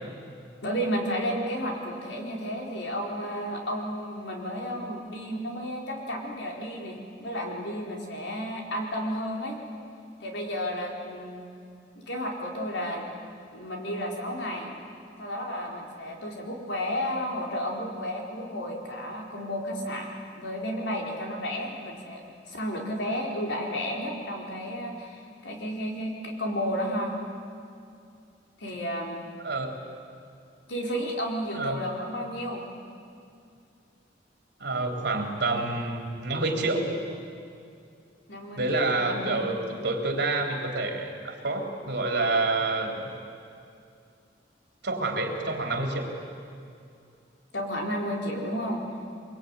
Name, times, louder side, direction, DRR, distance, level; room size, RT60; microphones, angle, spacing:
voice 1, 0.6-9.6 10.2-11.4 12.0-13.1 13.5-14.7 15.2-20.1 20.3-27.1 28.6-29.2 30.7-32.6 38.3-39.4 47.5-48.8, equal, 70° left, 0 dB, 4.6 m, -32 dB
voice 2, 29.4-29.8 31.5-31.8 34.6-36.9 38.6-39.6 39.8-43.1 44.8-46.1, right 2 dB, 65° right, 2 dB, 3.8 m, -28 dB
24.0 x 23.0 x 9.8 m, 2.4 s
head